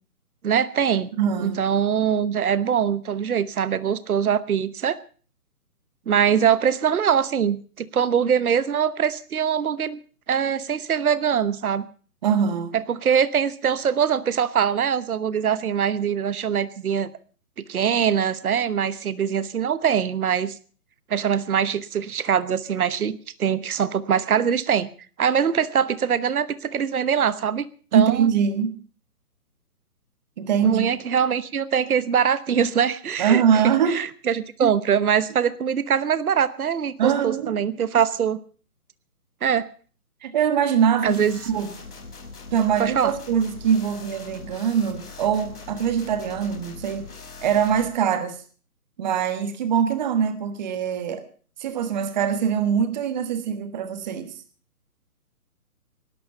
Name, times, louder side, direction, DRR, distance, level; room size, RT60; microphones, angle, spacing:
voice 1, 0.4-1.1 1.4-5.0 6.1-10.0 10.3-11.9 12.7-17.1 17.7-20.6 21.1-24.9 25.2-27.6 27.9-28.3 30.6-33.4 33.9-38.4 39.4-39.7 41.0-41.4 42.8-43.1, right 8 dB, 70° right, 16 dB, 1.1 m, -23 dB
voice 2, 1.2-1.6 12.2-12.7 27.9-28.7 30.4-30.8 33.2-34.0 37.0-37.5 40.2-41.7 42.5-47.1 47.4-48.4 49.0-51.2 51.6-54.3, right 7 dB, 30° right, 10 dB, 1.3 m, -23 dB
sound 1, 41.1-47.9, left 4 dB, 80° left, 4.5 m, -41 dB
18.5 x 11.5 x 5.6 m, 0.41 s
hypercardioid pair, 155°, 45 cm